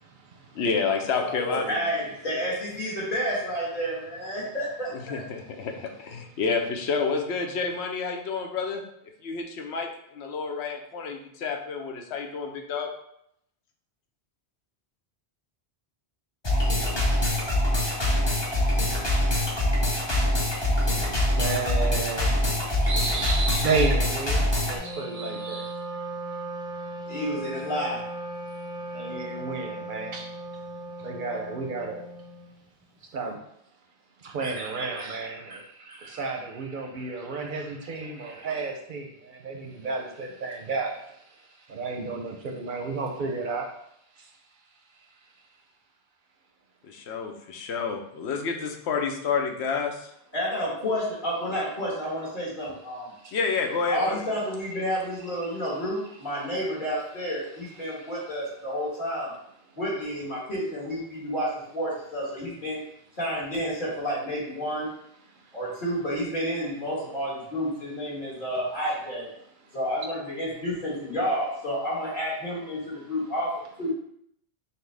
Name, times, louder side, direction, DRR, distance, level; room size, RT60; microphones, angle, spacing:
voice 1, 0.0-0.5 21.1-25.8 28.9-30.3 31.0-32.1 33.1-33.4 34.2-43.7 44.1-44.4 44.9-45.5 53.1-53.4 55.4-55.6 57.8-58.1 65.3-65.6 69.6-69.8 72.4-72.5, right 4 dB, 60° right, 3 dB, 0.6 m, -33 dB
voice 2, 0.5-1.8 4.9-8.8 9.2-12.9 46.9-50.1 53.3-54.2, left 5 dB, 85° left, 3 dB, 0.9 m, -29 dB
voice 3, 1.1-5.2 27.1-28.1 50.3-53.1 53.9-59.3 59.7-62.8 63.2-64.9 65.5-69.3 69.7-73.9, equal, 50° left, -7 dB, 1.8 m, -30 dB
sound 1, 16.4-24.8, left 1 dB, 30° left, 0.8 m, -24 dB
Wind instrument woodwind instrument, 24.7-32.6, right 2 dB, 5° right, 0.3 m, -37 dB
5.8 x 2.1 x 3.3 m, 0.74 s
omnidirectional pair, 1.1 m